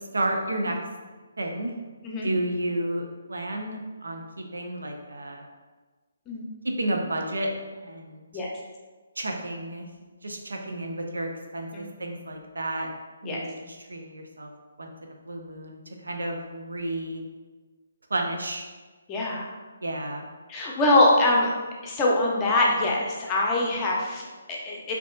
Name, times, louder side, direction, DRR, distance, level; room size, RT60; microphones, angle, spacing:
voice 1, 0.1-0.8 1.4-1.8 2.2-5.4 6.6-7.5 7.8-8.2 9.2-9.9 10.2-12.9 13.2-14.5 14.8-17.2 18.1-18.7 19.8-20.3, right 1 dB, 90° right, 2 dB, 0.5 m, -31 dB
voice 2, 19.1-19.5 20.5-21.5 21.8-24.9, left 2 dB, 20° left, -3 dB, 0.6 m, -23 dB
4.1 x 2.8 x 2.4 m, 1.3 s
hypercardioid pair, 155°, 0 cm